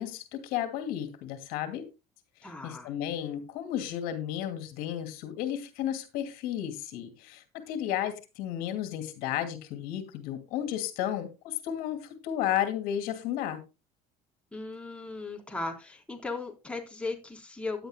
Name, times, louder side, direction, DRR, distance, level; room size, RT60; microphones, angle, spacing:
voice 1, 0.0-1.9 2.4-13.6, left 11 dB, 75° left, 8 dB, 2.6 m, -33 dB
voice 2, 2.4-2.9 14.5-17.9, left 3 dB, 5° left, 1 dB, 3.7 m, -37 dB
16.0 x 11.0 x 2.2 m, 0.27 s
cardioid pair, 115°, 15 cm